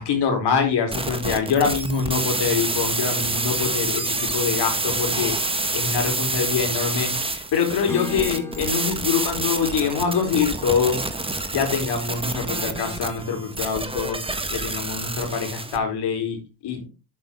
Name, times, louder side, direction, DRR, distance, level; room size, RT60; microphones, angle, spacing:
voice 1, 0.0-5.4 5.7-11.0 11.5-16.9, left 6 dB, 55° left, 4 dB, 4.3 m, -24 dB
sound 1, 0.9-15.8, right 2 dB, 10° right, 1.6 m, -27 dB
Acoustic guitar / Strum, 7.9-11.8, left 2 dB, 5° left, 1.8 m, -38 dB
12.0 x 6.0 x 3.8 m, 0.30 s
hypercardioid pair, 65°, 48 cm